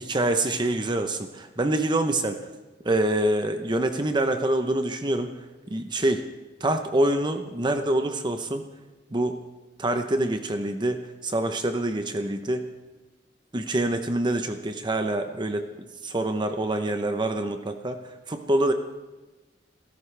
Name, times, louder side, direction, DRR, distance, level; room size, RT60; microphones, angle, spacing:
voice 1, 0.0-2.4 2.8-6.3 6.6-8.6 9.1-9.4 9.8-12.7 13.5-15.7 16.0-18.7, right 1 dB, 25° right, 7 dB, 0.8 m, -26 dB
27.5 x 14.0 x 3.4 m, 1.2 s
head